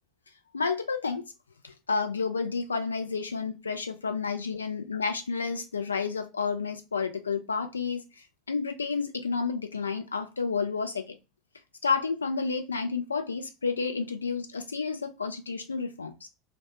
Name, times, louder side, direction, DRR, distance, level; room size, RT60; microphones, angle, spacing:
voice 1, 0.5-1.3 1.6-8.0 8.5-11.2 11.8-16.3, left 5 dB, 80° left, 0.3 m, -30 dB
2.1 x 2.0 x 2.8 m
figure-of-eight pair, 75°, 0 cm